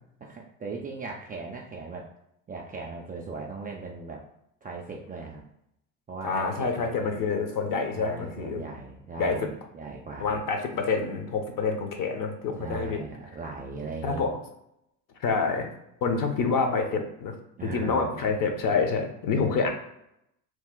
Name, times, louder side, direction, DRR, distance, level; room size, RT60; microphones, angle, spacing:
voice 1, 0.2-2.1 2.5-4.3 4.6-5.4 6.1-7.2 7.9-10.4 12.6-14.3 17.6-18.2 19.4-19.7, right 4 dB, 20° right, -1 dB, 0.3 m, -38 dB
voice 2, 6.2-8.6 9.2-9.5 10.2-13.0 14.0-14.4 15.2-15.7 16.0-17.4 17.6-19.7, left 4 dB, 45° left, 5 dB, 0.8 m, -27 dB
3.0 x 2.3 x 3.6 m, 0.79 s
hypercardioid pair, 70°, 45 cm